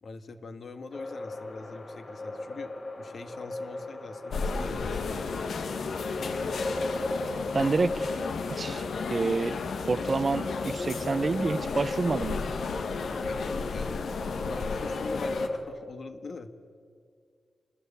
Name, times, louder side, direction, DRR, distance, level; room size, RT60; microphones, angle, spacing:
voice 1, 0.0-5.8 13.2-16.5, left 4 dB, 55° left, 9 dB, 1.7 m, -43 dB
sound 1, 0.9-15.6, left 2 dB, 40° left, 5.2 m, -37 dB
sound 2, 4.3-15.5, left 4 dB, 85° left, 1.7 m, -33 dB
voice 2, 7.5-8.2 8.5-8.8 9.1-9.6 9.8-12.5, right 4 dB, 35° right, 15 dB, 0.7 m, -28 dB
27.5 x 20.5 x 8.5 m, 2.2 s
wide cardioid pair, 155°, 0 cm